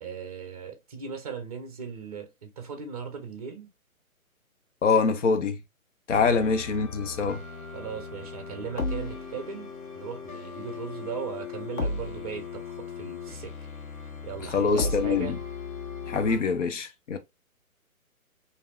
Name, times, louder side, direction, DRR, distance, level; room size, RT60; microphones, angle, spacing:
voice 1, 0.0-3.7 6.3-6.4 7.7-13.5 14.0-15.4, right 6 dB, 25° right, 0.6 m, -38 dB
voice 2, 4.8-5.6 6.1-7.4 14.5-15.4 16.1-17.2, left 5 dB, 55° left, 0.7 m, -24 dB
sound 1, 6.1-16.4, left 4 dB, 80° left, 1.2 m, -36 dB
3.3 x 2.6 x 2.3 m
figure-of-eight pair, 145°, 43 cm